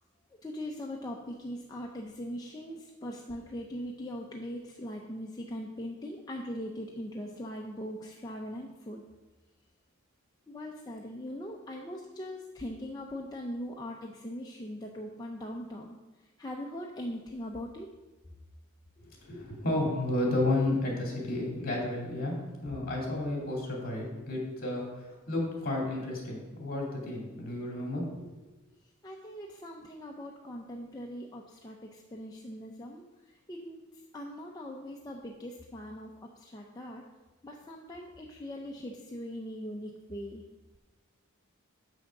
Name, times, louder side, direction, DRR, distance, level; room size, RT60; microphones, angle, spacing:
voice 1, 0.4-9.0 10.5-16.0 16.4-17.9 29.0-33.0 33.5-33.8 34.1-37.0 37.4-40.4, equal, 20° left, 0 dB, 0.6 m, -40 dB
voice 2, 19.0-22.4 22.6-28.3, left 2 dB, 45° left, -2 dB, 2.7 m, -32 dB
7.6 x 6.3 x 5.9 m, 1.1 s
head